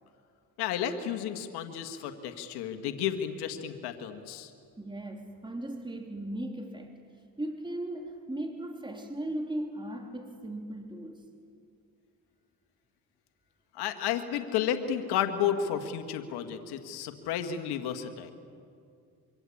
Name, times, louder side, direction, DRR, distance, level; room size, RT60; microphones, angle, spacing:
voice 1, 0.6-4.5 13.7-18.3, left 9 dB, 90° left, 7 dB, 1.8 m, -32 dB
voice 2, 4.8-7.0 7.4-11.2, right 1 dB, 10° right, 3 dB, 3.2 m, -37 dB
26.5 x 25.0 x 8.6 m, 2.3 s
supercardioid pair, 65°, 38 cm